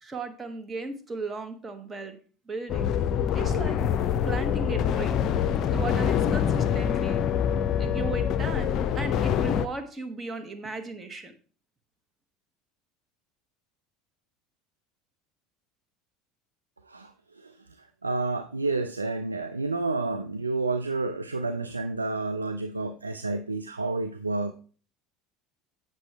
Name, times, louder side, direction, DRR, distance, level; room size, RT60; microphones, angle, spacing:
voice 1, 0.0-2.2 2.5-2.9 3.3-3.8 4.3-5.1 5.7-7.2 7.8-11.3, right 3 dB, 20° right, 6 dB, 1.4 m, -36 dB
sound 1, 2.7-9.7, left 8 dB, 45° left, 0.5 m, -25 dB
voice 2, 16.9-24.5, right 3 dB, 90° right, 7 dB, 0.4 m, -30 dB
8.3 x 6.1 x 3.4 m, 0.40 s
figure-of-eight pair, 70°, 0 cm